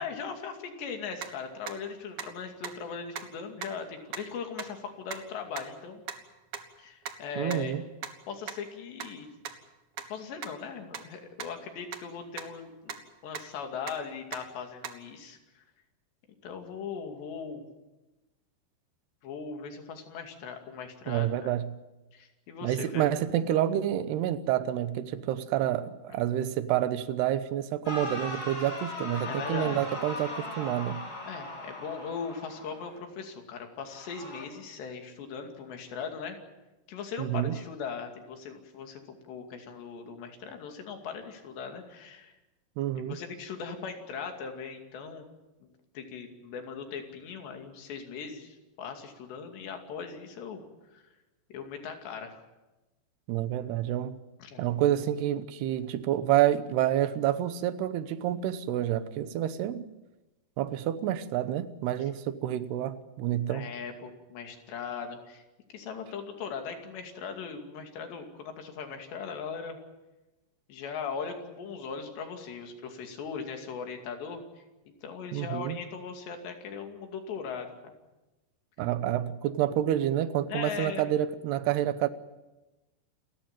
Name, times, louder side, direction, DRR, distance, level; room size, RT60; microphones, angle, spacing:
voice 1, 0.0-6.0 6.8-7.7 8.3-9.3 10.1-13.0 13.2-15.6 16.4-17.7 19.2-21.3 22.1-23.0 29.3-29.8 31.3-36.4 36.9-39.0 39.3-42.3 43.1-45.3 45.6-45.7 45.9-50.6 50.9-51.0 51.5-52.4 54.4-54.6 62.0-62.1 63.5-65.4 65.7-69.8 70.7-77.7 80.5-81.0, left 6 dB, 85° left, 4 dB, 4.7 m, -39 dB
sound 1, 1.2-1.3 1.7-1.8 2.2-2.3 2.6-2.8 3.1-3.2 3.6-3.7 4.1-4.2 4.6-4.7 5.1-5.2 5.6-5.7 6.1-6.2 6.5-6.6 7.1-7.2 7.5-7.6 8.0-8.1 8.5-8.6 9.0-9.1 9.5-9.6 10.0-10.1 10.4-10.5 10.9-11.0 11.4-11.5 11.9-12.0 12.4-12.5 12.9-13.0 13.3-13.4 13.9-14.0 14.3-14.4 14.8-14.9, right 7 dB, 55° right, 1.7 m, -37 dB
voice 2, 7.4-7.8 21.1-21.7 22.6-31.0 37.2-37.6 42.8-43.2 53.3-54.2 54.6-59.9 60.6-63.7 75.3-75.8 78.8-82.1, right 12 dB, 80° right, 13 dB, 3.0 m, -28 dB
sound 2, 27.9-33.0 33.8-34.4, left 1 dB, 20° left, 4.4 m, -39 dB
29.0 x 14.5 x 9.1 m, 1.1 s
omnidirectional pair, 4.8 m